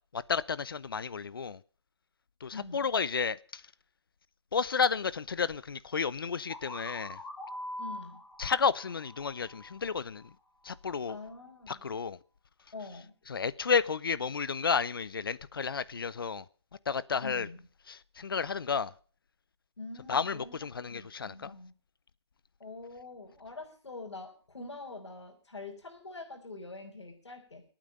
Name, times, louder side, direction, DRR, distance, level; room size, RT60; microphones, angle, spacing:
voice 1, 0.1-1.6 2.4-3.6 4.5-7.2 8.4-10.3 10.6-11.2 11.7-12.2 13.3-16.5 16.9-17.5 17.9-18.9 20.1-21.5, left 5 dB, 55° left, 0.7 m, -32 dB
voice 2, 2.5-2.9 7.8-8.2 11.1-11.9 12.7-13.1 17.2-17.6 19.8-21.7 22.6-27.6, left 3 dB, 85° left, 4.8 m, -45 dB
sound 1, 6.5-10.3, left 1 dB, 5° left, 2.7 m, -44 dB
25.5 x 9.1 x 5.4 m
hypercardioid pair, 170°, 14 cm